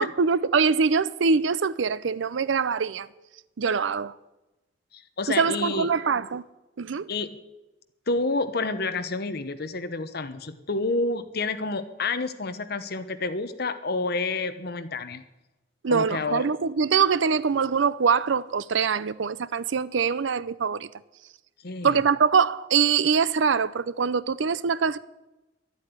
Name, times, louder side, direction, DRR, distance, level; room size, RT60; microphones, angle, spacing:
voice 1, 0.0-3.1 3.6-4.1 5.3-6.4 6.8-7.1 15.8-20.9 21.8-25.0, right 5 dB, 85° right, 0.5 m, -23 dB
voice 2, 4.9-5.9 7.1-7.4 8.1-15.2 15.9-16.4 21.6-22.0, left 3 dB, 60° left, 1.0 m, -29 dB
12.0 x 8.3 x 9.7 m
head